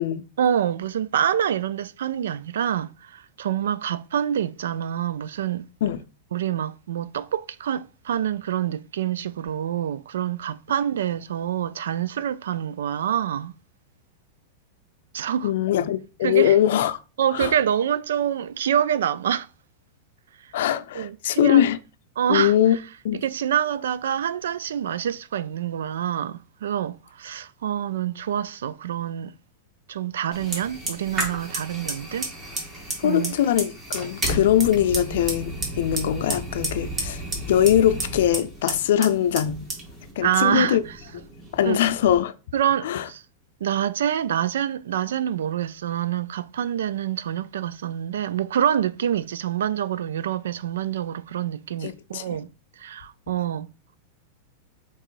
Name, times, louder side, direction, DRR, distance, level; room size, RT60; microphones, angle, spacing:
voice 1, 0.4-5.7 6.3-13.5 15.1-15.5 16.2-16.6 17.2-19.5 20.9-21.7 22.2-22.8 23.2-29.3 29.9-32.3 33.0-33.4 40.2-40.8 41.6-41.8 42.5-43.2 43.6-52.5 52.8-53.7, right 10 dB, 85° right, 0.3 m, -26 dB
voice 2, 15.4-17.0 17.3-17.6 20.5-21.8 22.3-22.8 23.0-23.2 33.0-39.7 40.2-40.8 41.5-42.3 42.8-43.0 51.8-52.2, left 11 dB, 75° left, 0.4 m, -22 dB
Fire, 30.3-42.2, right 1 dB, 25° right, 1.7 m, -32 dB
3.3 x 3.0 x 4.6 m
supercardioid pair, 135°, 0 cm